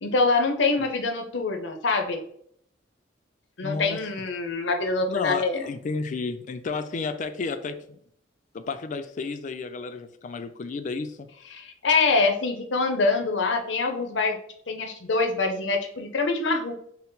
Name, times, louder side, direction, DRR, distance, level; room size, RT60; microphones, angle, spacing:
voice 1, 0.0-2.2 3.6-5.7 11.5-14.4 14.7-16.7, left 3 dB, 80° left, 5 dB, 0.6 m, -25 dB
voice 2, 3.6-4.0 5.1-8.0 8.5-11.2, left 4 dB, 45° left, 10 dB, 0.3 m, -32 dB
4.3 x 2.0 x 3.8 m, 0.66 s
head